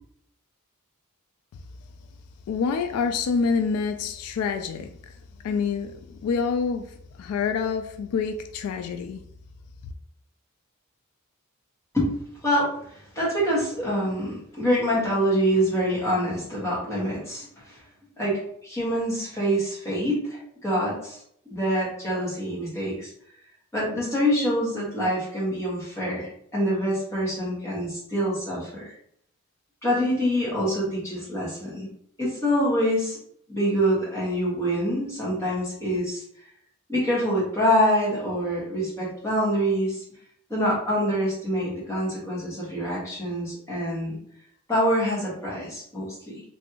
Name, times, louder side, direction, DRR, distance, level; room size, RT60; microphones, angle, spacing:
voice 1, 2.5-5.1 5.4-9.2, left 5 dB, 80° left, 0.3 m, -27 dB
voice 2, 12.4-17.8 18.2-21.2 21.5-23.1 23.7-28.9 29.8-31.9 32.2-33.2 33.5-36.2 36.9-40.0 40.5-44.1 44.7-46.4, equal, 15° left, 1.4 m, -25 dB
3.1 x 2.6 x 2.8 m
head